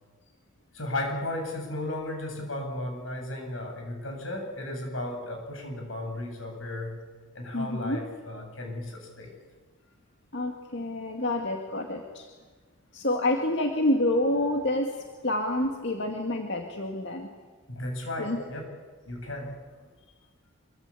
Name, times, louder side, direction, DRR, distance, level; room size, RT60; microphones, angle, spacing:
voice 1, 0.7-7.0 7.3-9.4 17.7-18.7 19.0-19.9, left 1 dB, 85° left, 3 dB, 7.6 m, -35 dB
voice 2, 7.5-8.1 10.3-12.3 12.9-17.3 18.2-18.4, left 1 dB, 60° left, 2 dB, 2.3 m, -28 dB
26.0 x 24.0 x 8.5 m, 1.4 s
head